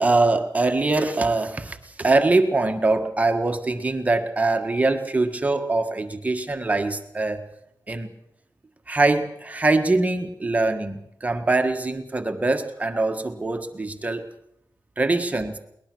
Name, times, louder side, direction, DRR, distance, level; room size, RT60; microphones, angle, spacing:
voice 1, 0.0-7.4 7.9-8.1 8.9-14.2 15.0-15.6, right 2 dB, 20° right, 6 dB, 1.6 m, -23 dB
21.5 x 20.0 x 6.3 m, 0.78 s
wide cardioid pair, 120°, 7 cm